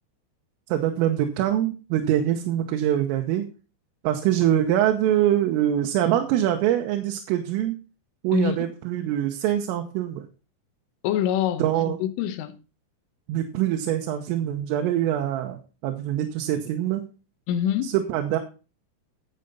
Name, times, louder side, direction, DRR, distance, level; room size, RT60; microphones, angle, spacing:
voice 1, 0.7-3.5 4.0-7.8 8.2-10.3 11.6-12.0 13.3-17.0 17.8-18.4, right 11 dB, 85° right, 3.7 m, -24 dB
voice 2, 11.0-12.5 17.5-18.0, left 10 dB, 80° left, 3.6 m, -25 dB
12.0 x 7.9 x 4.1 m
omnidirectional pair, 5.7 m